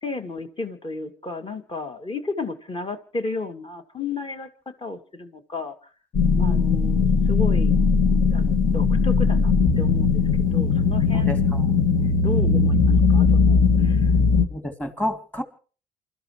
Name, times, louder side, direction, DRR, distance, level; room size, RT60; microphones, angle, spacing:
voice 1, 0.0-4.5 4.8-5.8 6.4-7.8 8.3-10.2 10.5-11.3 12.0-14.1, left 3 dB, 30° left, 6 dB, 2.6 m, -33 dB
sound 1, 6.1-14.5, left 5 dB, 55° left, 2.2 m, -19 dB
voice 2, 6.3-6.6 11.1-11.7 12.4-12.6 14.5-15.4, left 1 dB, 10° left, 6 dB, 3.0 m, -31 dB
28.5 x 13.5 x 3.3 m, 0.39 s
hypercardioid pair, 65°, 17 cm